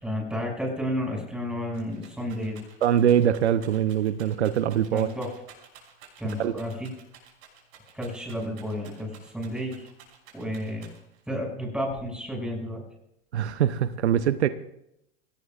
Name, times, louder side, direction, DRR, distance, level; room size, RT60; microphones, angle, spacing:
voice 1, 0.0-2.6 4.9-5.3 6.2-6.9 7.9-9.9 10.3-10.9 11.3-12.8, equal, 5° right, 0 dB, 6.2 m, -31 dB
Rattle, 1.3-11.3 11.9-12.5, right 6 dB, 60° right, 5.9 m, -52 dB
voice 2, 2.8-5.1 6.4-6.5 13.3-14.5, right 9 dB, 80° right, 13 dB, 0.8 m, -23 dB
23.0 x 17.5 x 2.4 m, 0.80 s
hypercardioid pair, 95°, 33 cm